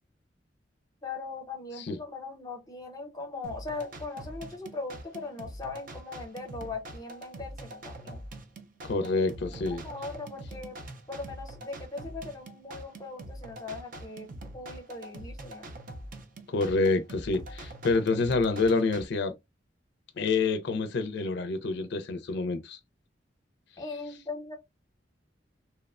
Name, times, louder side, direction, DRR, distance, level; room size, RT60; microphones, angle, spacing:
voice 1, 1.0-8.2 9.4-10.8 11.1-14.3 14.5-15.7 23.8-24.5, left 3 dB, 20° left, 0.7 m, -40 dB
sound 1, 3.4-19.0, right 1 dB, 45° right, 0.4 m, -44 dB
voice 2, 8.8-9.8 16.5-19.3 20.2-22.8, left 3 dB, 65° left, 0.4 m, -27 dB
2.8 x 2.1 x 2.3 m
head